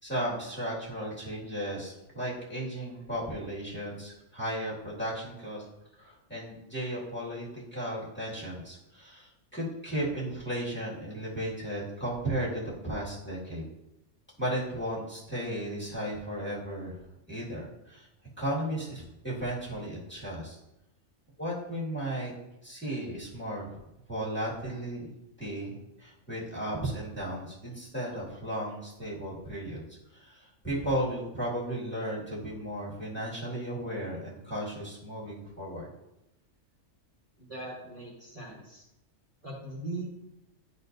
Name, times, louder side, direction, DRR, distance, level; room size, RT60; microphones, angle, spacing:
voice 1, 0.0-5.7 6.0-13.6 14.4-17.0 17.3-18.1 18.4-20.6 21.4-22.3 22.6-23.8 24.1-25.1 25.4-29.8 30.1-35.9, right 1 dB, 10° left, -7 dB, 1.9 m, -35 dB
voice 2, 37.4-38.8 39.4-40.1, right 2 dB, 30° right, -6 dB, 1.2 m, -40 dB
10.5 x 4.2 x 2.6 m, 0.89 s
omnidirectional pair, 1.3 m